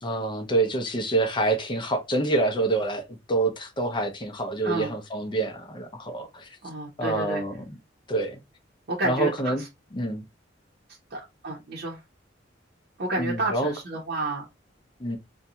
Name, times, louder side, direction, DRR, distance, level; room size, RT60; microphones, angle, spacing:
voice 1, 0.0-6.6 7.0-7.8 8.1-8.4 9.0-9.6 9.9-10.2 13.2-13.7 15.0-15.2, right 2 dB, 25° left, 0.6 m, -27 dB
voice 2, 6.6-7.4 8.9-9.3 11.1-12.0 13.0-14.5, right 2 dB, 55° right, 0.8 m, -30 dB
2.6 x 2.3 x 2.7 m
head